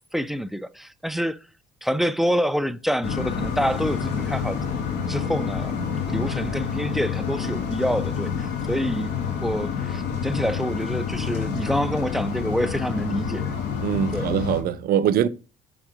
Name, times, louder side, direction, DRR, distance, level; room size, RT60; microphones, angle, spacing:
voice 1, 0.1-1.4 1.8-4.6 5.1-5.8 6.1-9.1 9.4-13.5 14.1-14.3, equal, ahead, 0.3 m, -27 dB
sound 1, 3.0-14.6, left 6 dB, 80° left, 1.8 m, -28 dB
voice 2, 13.8-15.3, right 9 dB, 65° right, 0.5 m, -22 dB
6.2 x 3.7 x 4.8 m
cardioid pair, 110°, 17 cm